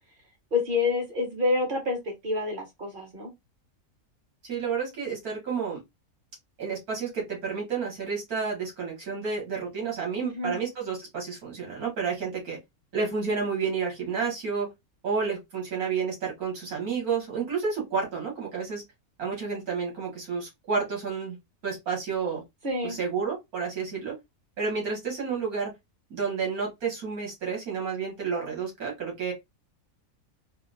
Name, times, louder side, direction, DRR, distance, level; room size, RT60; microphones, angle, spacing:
voice 1, 0.5-3.3 10.2-10.5 22.6-23.0, left 3 dB, 35° right, 1.4 m, -28 dB
voice 2, 4.4-5.8 6.6-12.6 12.9-14.7 15.0-18.8 19.2-21.4 21.6-22.4 22.8-24.1 24.6-25.7 26.1-29.3, right 5 dB, 75° right, 2.1 m, -30 dB
4.3 x 2.0 x 2.5 m
omnidirectional pair, 1.6 m